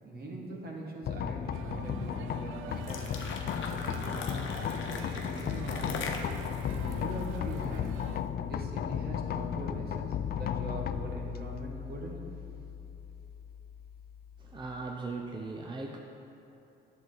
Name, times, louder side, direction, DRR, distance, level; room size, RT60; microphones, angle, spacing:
voice 1, 0.0-3.0 3.5-4.5 4.9-6.1 6.7-7.9 8.5-12.2, right 2 dB, 50° right, -2 dB, 1.7 m, -42 dB
sound 1, 1.0-14.9, left 9 dB, 50° left, 0.4 m, -35 dB
sound 2, 1.5-8.2, right 8 dB, 80° right, 0.4 m, -46 dB
sound 3, 2.7-8.0, left 4 dB, 75° left, 0.9 m, -41 dB
voice 2, 14.4-16.0, right 3 dB, 25° right, 1 dB, 0.6 m, -38 dB
10.5 x 7.2 x 4.0 m, 2.9 s
cardioid pair, 90°, 20 cm